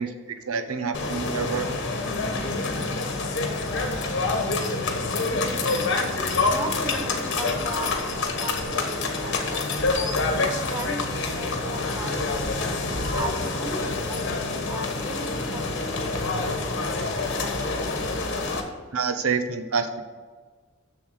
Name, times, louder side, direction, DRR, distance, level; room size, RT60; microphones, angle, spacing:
voice 1, 0.0-1.7 18.9-20.0, right 5 dB, 90° right, 8 dB, 0.9 m, -27 dB
sound 1, 0.9-18.6, left 3 dB, 55° left, 1.3 m, -27 dB
voice 2, 5.1-5.5 6.4-8.9 9.2-10.2 10.6-12.7 13.1-17.0, right 1 dB, 15° right, 2 dB, 1.2 m, -37 dB
7.1 x 6.8 x 6.5 m, 1.4 s
head